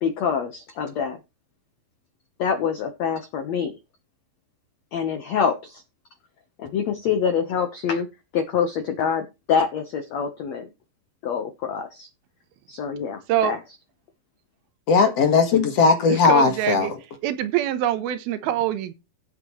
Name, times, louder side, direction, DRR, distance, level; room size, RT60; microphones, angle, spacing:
voice 1, 0.0-1.2 2.4-3.7 4.9-5.8 6.6-8.1 8.3-10.7 11.2-12.1 12.7-13.6, left 7 dB, 85° left, 1.5 m, -25 dB
voice 2, 14.9-16.9, left 5 dB, 50° left, 2.1 m, -18 dB
voice 3, 16.1-16.9 17.2-18.9, right 11 dB, 75° right, 2.7 m, -24 dB
16.0 x 8.1 x 3.1 m
omnidirectional pair, 4.8 m